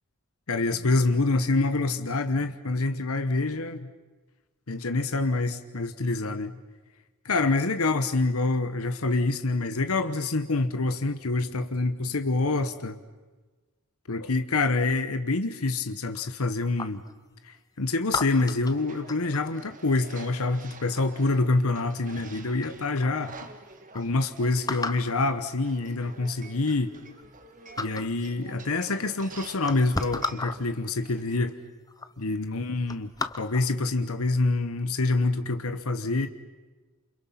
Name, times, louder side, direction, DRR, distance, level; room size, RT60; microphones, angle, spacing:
voice 1, 0.5-3.9 4.7-6.6 7.2-13.0 14.1-17.0 17.4-23.3 23.9-26.9 27.8-31.6 32.2-33.1 33.4-36.3, left 3 dB, 80° left, 9 dB, 1.2 m, -26 dB
sound 1, 16.1-17.1 18.1-19.5 21.2-21.6 22.2-22.3 22.6-23.2 23.6-23.7 23.9-24.0 24.7-25.2 26.1-26.2 26.6-27.5 27.7-28.2 29.0-29.1 29.5-30.6 31.4-31.5 31.9-32.1 32.5-33.7 34.2-34.5, left 3 dB, 15° left, 0.9 m, -34 dB
sound 2, 18.7-31.4, right 3 dB, 35° right, 1.8 m, -49 dB
29.0 x 28.0 x 5.9 m, 1.3 s
head